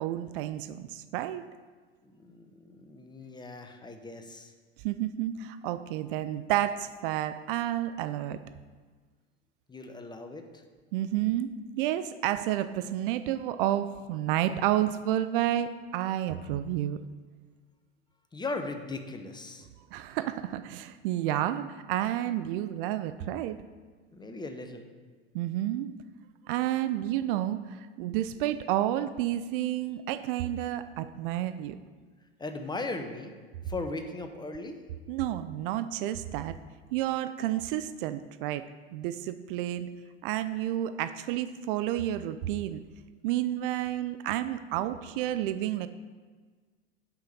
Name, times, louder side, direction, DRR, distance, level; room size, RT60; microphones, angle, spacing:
voice 1, 0.0-1.4 4.8-8.4 10.9-17.0 19.9-23.6 25.3-25.9 26.5-31.8 35.1-36.5 36.9-39.9 40.2-42.8 43.2-45.9, right 12 dB, 55° right, 12 dB, 0.5 m, -30 dB
voice 2, 2.0-4.5 9.7-10.6 18.3-19.7 24.1-24.9 32.4-33.3 33.6-34.8, left 2 dB, 15° left, 6 dB, 0.8 m, -38 dB
5.8 x 5.6 x 6.7 m, 1.5 s
hypercardioid pair, 85°, 32 cm